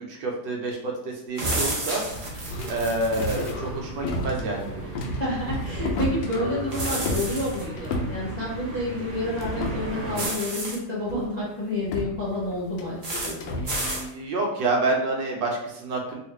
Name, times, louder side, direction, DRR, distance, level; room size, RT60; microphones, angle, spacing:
voice 1, 0.0-2.0 2.7-4.9 13.6-16.2, right 2 dB, 80° right, 0 dB, 1.4 m, -28 dB
sound 1, 1.4-3.5 6.7-7.6 10.1-10.8 13.0-13.3 13.7-14.0, right 1 dB, 65° right, 0.5 m, -30 dB
sound 2, 2.1-10.3, right 1 dB, 45° right, 1.0 m, -37 dB
sound 3, 2.5-9.0 9.3-10.7 11.1-11.3 11.8-14.0, left 1 dB, 85° left, 1.3 m, -33 dB
voice 2, 5.1-13.0 13.2-13.6, left 1 dB, 30° left, -8 dB, 0.9 m, -29 dB
3.4 x 2.4 x 3.1 m, 0.81 s
omnidirectional pair, 2.0 m